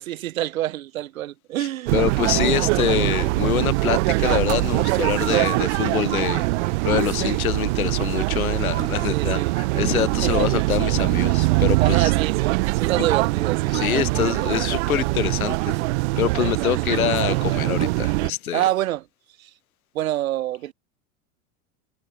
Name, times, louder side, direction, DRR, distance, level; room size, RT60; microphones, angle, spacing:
voice 1, 0.0-1.9 9.1-9.5 10.2-10.5 11.8-14.3 16.7-16.8 18.5-19.0 19.4-19.5 19.9-20.7, right 14 dB, 75° right, 1.0 m, -27 dB
voice 2, 1.6-12.1 13.0-13.1 13.7-15.8 16.2-18.6, left 11 dB, 85° left, 0.7 m, -25 dB
sound 1, 1.9-18.3, right 23 dB, 55° right, 0.5 m, -22 dB
sound 2, 8.8-9.3 10.9-11.3 13.7-14.3 15.3-16.0 16.7-16.8 17.1-17.2 17.7-18.4 18.9-19.0, right 8 dB, 30° right, 7.7 m, -37 dB
hypercardioid pair, 85°, 41 cm